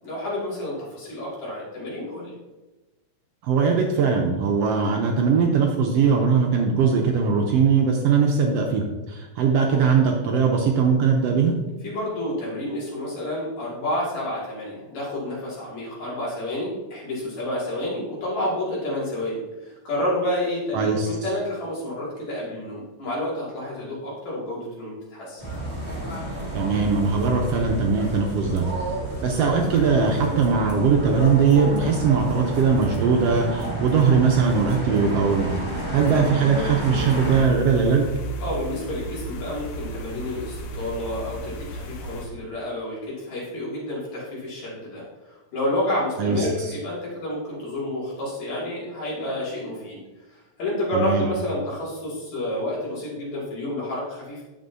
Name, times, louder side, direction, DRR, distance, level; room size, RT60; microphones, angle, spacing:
voice 1, 0.0-2.3 11.8-25.4 38.4-50.0 50.3-54.4, left 1 dB, 70° left, -6 dB, 3.6 m, -29 dB
voice 2, 3.4-11.6 20.7-21.1 26.5-28.6 29.2-35.5 35.9-38.1 46.2-46.5 50.9-51.3, right 5 dB, 75° right, 1 dB, 1.6 m, -20 dB
sound 1, 25.4-37.4, right 1 dB, 20° right, 1.2 m, -30 dB
sound 2, 37.0-42.3, right 2 dB, 85° left, 2.2 m, -34 dB
8.9 x 6.9 x 2.7 m, 1.1 s
omnidirectional pair, 3.3 m